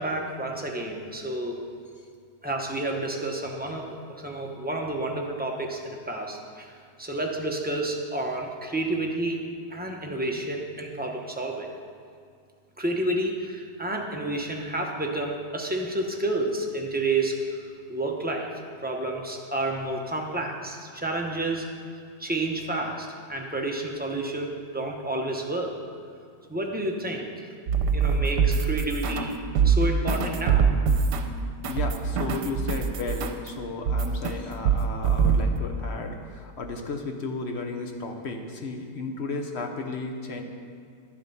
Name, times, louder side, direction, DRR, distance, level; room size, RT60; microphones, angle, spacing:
voice 1, 0.0-1.6 2.4-6.7 7.0-9.4 9.7-11.7 12.8-17.6 17.9-18.5 18.8-21.7 22.2-25.8 26.5-27.3 27.9-29.3 29.6-30.7, right 2 dB, 10° right, 0 dB, 0.5 m, -30 dB
sound 1, 27.7-29.3 29.5-33.5 33.9-34.3 34.6-35.5, right 6 dB, 75° right, 1.3 m, -23 dB
voice 2, 31.6-40.4, left 3 dB, 50° left, 4 dB, 0.9 m, -34 dB
11.0 x 7.8 x 5.5 m, 2.3 s
omnidirectional pair, 1.9 m